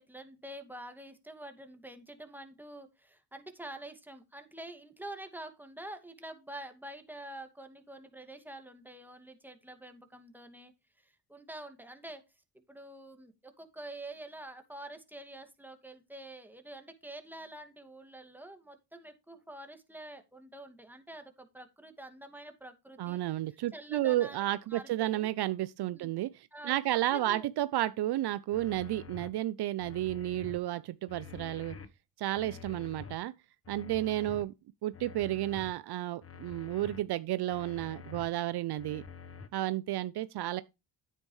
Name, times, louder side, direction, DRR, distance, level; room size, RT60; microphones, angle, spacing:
voice 1, 0.0-12.2 12.5-23.2 23.5-24.4 24.7-25.3 25.9-26.1 26.5-27.5 32.4-32.6, right 1 dB, 5° right, 2.2 m, -47 dB
voice 2, 23.0-31.8 32.2-33.3 33.7-34.5 34.8-39.0 39.5-40.6, right 14 dB, 65° right, 0.6 m, -32 dB
sound 1, 28.5-29.3 29.8-30.6 31.1-31.9 32.4-33.2 33.6-34.4 34.9-35.7 36.2-37.0 37.5-38.3 38.8-39.5, left 6 dB, 35° left, 1.2 m, -47 dB
9.2 x 9.2 x 3.2 m
cardioid pair, 75°, 42 cm